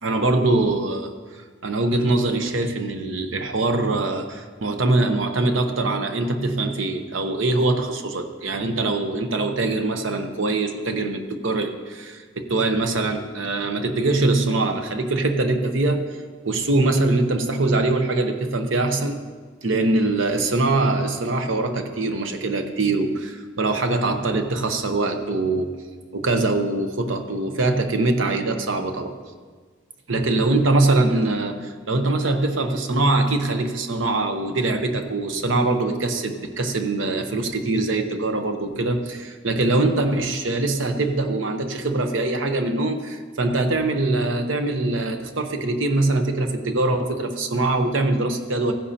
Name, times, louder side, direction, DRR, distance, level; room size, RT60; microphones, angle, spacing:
voice 1, 0.0-16.2 16.4-19.2 19.6-25.7 26.1-29.2 30.1-48.7, right 2 dB, 80° right, 7 dB, 0.9 m, -23 dB
15.5 x 10.5 x 2.9 m, 1.5 s
head